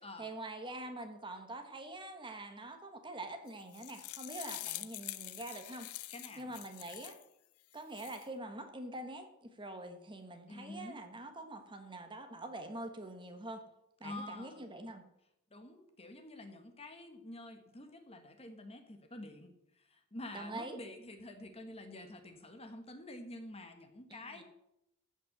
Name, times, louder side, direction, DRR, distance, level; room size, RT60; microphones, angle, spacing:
voice 1, 0.0-5.9 6.4-7.2 7.7-13.6 14.0-15.0 20.3-20.8 24.1-24.4, right 2 dB, 20° right, 6 dB, 1.3 m, -45 dB
sound 1, 3.5-7.2 7.7-8.2, left 16 dB, 75° left, 0.6 m, -45 dB
voice 2, 6.1-6.5 10.5-11.0 14.0-14.6 15.5-24.4, left 1 dB, 25° left, 7 dB, 1.3 m, -48 dB
14.5 x 5.4 x 7.9 m, 0.82 s
head